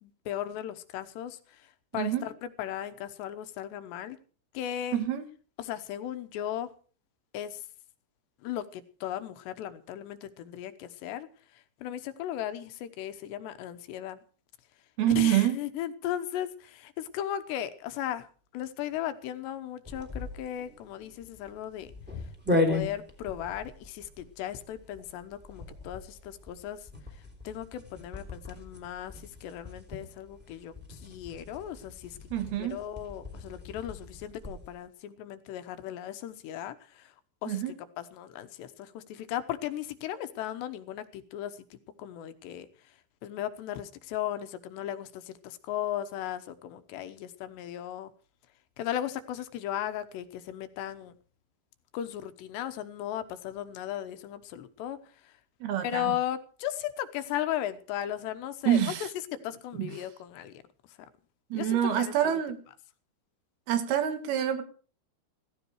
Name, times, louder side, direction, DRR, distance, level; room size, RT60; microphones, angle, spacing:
voice 1, 0.0-4.2 4.5-5.0 5.6-6.7 7.3-7.6 8.4-11.3 11.5-14.2 15.1-18.3 18.5-21.9 22.5-26.9 27.4-32.2 32.6-37.1 37.4-37.6 38.0-42.7 43.2-48.1 48.8-51.2 51.9-55.0 55.2-55.3 55.8-58.8 59.4-60.5 61.5-62.4, left 11 dB, 75° left, 3.1 m, -36 dB
voice 2, 1.9-2.3 4.9-5.3 15.0-15.6 32.3-32.9 37.5-37.7 55.6-56.1 58.7-59.1 59.8-59.9 61.5-62.6 63.7-64.6, right 11 dB, 65° right, 3.0 m, -27 dB
sound 1, 19.8-34.8, left 2 dB, 5° right, 2.5 m, -37 dB
16.0 x 15.5 x 4.7 m
omnidirectional pair, 5.2 m